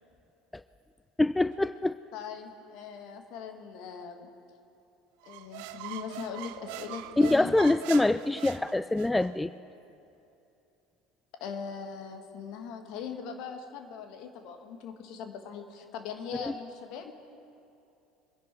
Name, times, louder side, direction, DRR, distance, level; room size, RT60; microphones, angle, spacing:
voice 1, 1.2-2.0 7.2-9.5 16.4-16.5, left 2 dB, 10° left, 14 dB, 0.3 m, -25 dB
voice 2, 2.1-4.3 5.2-7.5 11.4-17.1, left 6 dB, 60° left, 5 dB, 1.5 m, -40 dB
sound 1, 5.2-9.3, right 14 dB, 65° right, 0.5 m, -42 dB
24.5 x 10.5 x 4.8 m, 2.8 s
hypercardioid pair, 70°, 0 cm